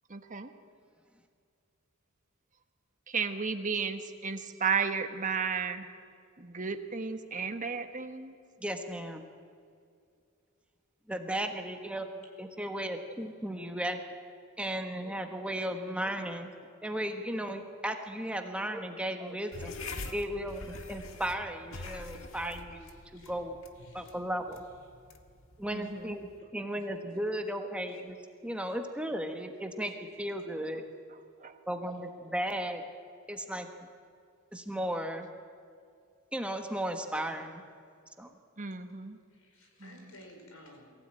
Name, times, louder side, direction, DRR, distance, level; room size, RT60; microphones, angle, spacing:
voice 1, 0.1-0.5 3.1-5.8 6.4-8.3 25.7-26.2 31.4-31.5 38.6-39.2 39.8-40.0, right 5 dB, 40° right, 7 dB, 1.4 m, -33 dB
voice 2, 8.6-9.3 11.1-12.1 12.4-14.0 14.6-16.5 16.8-19.7 20.1-23.6 23.9-24.6 25.6-28.2 28.4-29.9 30.2-30.8 31.7-32.8 33.3-33.7 34.5-35.3 36.3-37.6 38.2-38.3, right 1 dB, 5° right, 5 dB, 1.3 m, -35 dB
sound 1, 19.5-26.4, left 3 dB, 70° left, 1.7 m, -45 dB
voice 3, 23.8-24.2 39.3-40.9, left 1 dB, 90° left, 3 dB, 5.1 m, -54 dB
23.0 x 16.0 x 9.0 m, 2.3 s
head